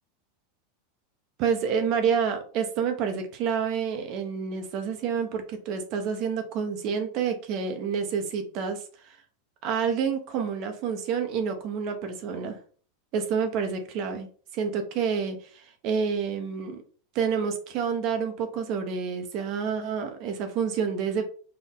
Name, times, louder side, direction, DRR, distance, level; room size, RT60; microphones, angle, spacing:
voice 1, 1.4-8.8 9.0-9.2 9.6-12.6 13.1-14.3 14.5-16.8 17.1-21.3, right 6 dB, 50° right, 6 dB, 1.0 m, -28 dB
4.5 x 2.6 x 3.7 m, 0.43 s
hypercardioid pair, 115°, 0 cm